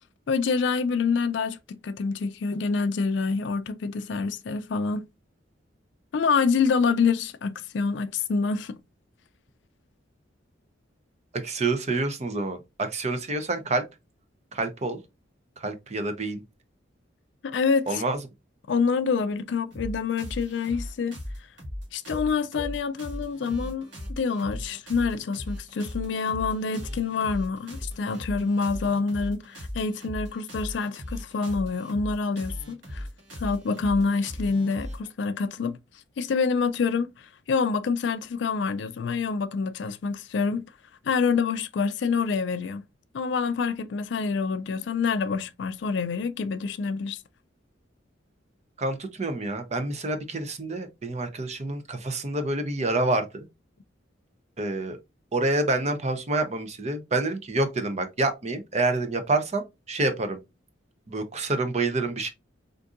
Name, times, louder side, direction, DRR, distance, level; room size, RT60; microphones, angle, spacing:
voice 1, 0.3-5.1 6.1-8.8 17.4-18.0 18.7-21.1 21.9-23.8 24.2-33.0 33.4-35.8 36.2-40.6 41.0-42.8 43.1-47.2, left 5 dB, 65° left, 0.4 m, -26 dB
voice 2, 11.3-13.8 14.5-15.0 15.6-16.4 17.9-18.2 48.8-53.5 54.6-55.0 55.3-60.4 61.1-62.3, right 2 dB, 35° right, 0.6 m, -27 dB
sound 1, 19.7-35.1, left 1 dB, 80° right, 1.5 m, -38 dB
3.6 x 2.6 x 2.5 m
head